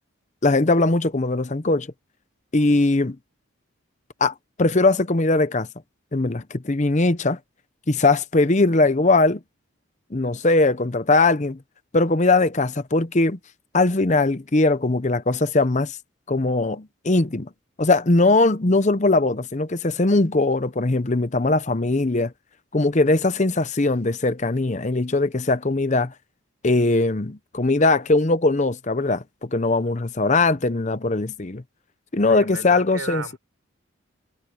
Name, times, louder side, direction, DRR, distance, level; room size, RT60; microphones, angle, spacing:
voice 1, 0.4-1.9 2.5-3.2 4.2-5.7 6.1-7.4 7.9-9.4 10.1-11.6 11.9-13.4 13.7-15.9 16.3-17.5 17.8-22.3 22.7-26.1 26.6-31.6 32.1-33.2, left 2 dB, 35° left, 0.8 m, -20 dB
voice 2, 32.3-33.4, right 4 dB, 75° right, 4.2 m, -34 dB
head